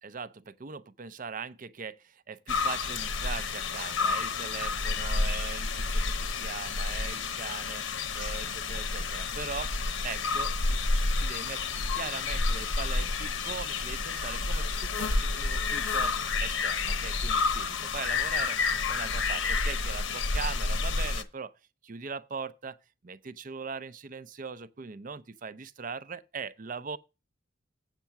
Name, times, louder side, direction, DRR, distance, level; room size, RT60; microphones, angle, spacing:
voice 1, 0.0-7.8 8.1-9.7 10.0-10.8 11.2-11.6 11.9-21.5 21.8-22.8 23.0-27.0, right 5 dB, 40° right, 0.5 m, -40 dB
sound 1, 2.5-21.2, left 4 dB, 65° left, 0.9 m, -30 dB
8.3 x 6.4 x 5.8 m
head